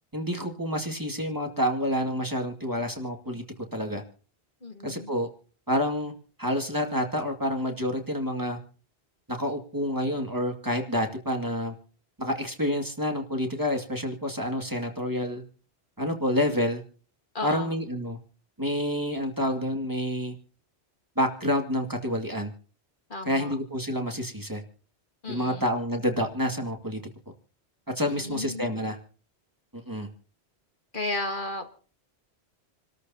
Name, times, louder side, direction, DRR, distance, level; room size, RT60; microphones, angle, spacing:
voice 1, 0.1-3.4 3.7-4.0 4.8-5.3 5.7-6.1 6.4-8.6 9.3-11.7 12.2-15.4 16.0-16.8 17.4-18.2 18.6-20.3 21.2-22.5 23.3-24.6 25.3-27.0 28.0-29.0 29.7-30.1, equal, 20° right, 3 dB, 2.2 m, -28 dB
voice 2, 4.6-5.1 17.3-17.8 23.1-23.5 25.2-25.7 28.1-28.7 30.9-31.7, left 2 dB, 50° left, 5 dB, 1.9 m, -34 dB
28.5 x 13.5 x 2.8 m, 0.39 s
omnidirectional pair, 1.1 m